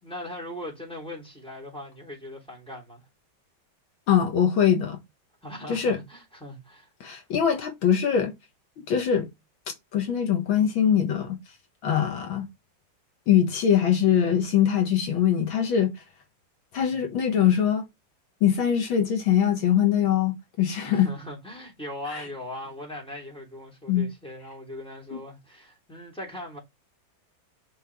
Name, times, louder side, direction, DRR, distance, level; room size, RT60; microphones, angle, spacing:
voice 1, 0.0-3.0 5.4-6.9 16.9-17.2 20.8-26.6, left 1 dB, 5° left, 3.5 m, -39 dB
voice 2, 4.1-5.0 5.7-6.0 7.0-8.3 8.9-9.3 9.9-11.4 11.8-12.5 13.3-16.0 16.7-17.8 18.4-21.1 22.1-22.2 23.9-24.1 25.1-25.2, left 9 dB, 90° left, 2.3 m, -22 dB
6.3 x 5.5 x 3.6 m
omnidirectional pair, 2.1 m